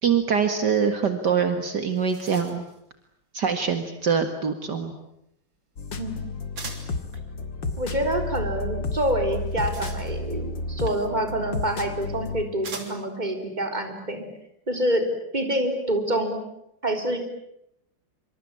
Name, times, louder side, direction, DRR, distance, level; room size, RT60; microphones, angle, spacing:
voice 1, 0.0-2.6 3.3-4.9, right 6 dB, 60° right, 7 dB, 2.4 m, -24 dB
sound 1, 1.4-1.5 1.8-2.8 6.6-7.0 9.3-10.4 11.5-11.6 12.6-13.2, right 4 dB, 90° right, 4.1 m, -41 dB
sound 2, 5.8-12.5, left 3 dB, 70° left, 2.8 m, -32 dB
voice 2, 6.0-6.3 7.8-14.3 14.7-15.1 15.3-16.4 16.8-17.2, right 1 dB, 20° right, 5 dB, 4.2 m, -27 dB
26.0 x 25.5 x 8.8 m, 0.80 s
omnidirectional pair, 2.1 m